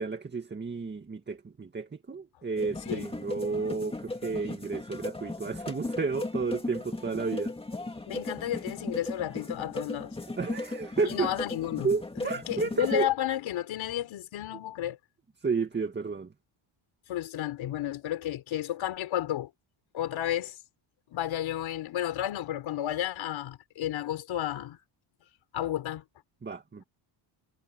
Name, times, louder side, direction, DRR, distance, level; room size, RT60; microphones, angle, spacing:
voice 1, 0.0-7.5 10.4-11.3 11.8-13.1 15.4-16.3 26.4-26.8, right 4 dB, 20° right, 2.1 m, -32 dB
sound 1, 2.6-13.1, left 2 dB, 10° left, 2.2 m, -37 dB
voice 2, 8.1-10.2 11.0-15.0 17.1-19.5 19.9-20.6 21.1-24.8 25.5-26.0, left 12 dB, 70° left, 3.6 m, -32 dB
cardioid pair, 145°, 48 cm